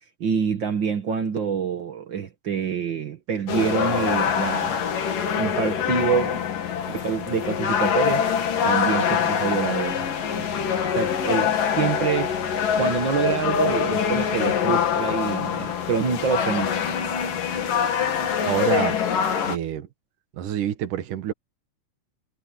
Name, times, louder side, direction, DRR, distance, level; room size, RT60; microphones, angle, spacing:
voice 1, 0.2-4.8 5.4-6.4 6.9-8.3 8.6-10.1 10.4-10.5 10.9-16.7, right 6 dB, 60° right, 1.3 m, -26 dB
sound 1, 3.5-19.6, left 8 dB, 85° left, 4.0 m, -24 dB
voice 2, 18.4-19.0 19.4-19.9 20.3-21.3, right 11 dB, 75° right, 3.1 m, -26 dB
omnidirectional pair, 3.8 m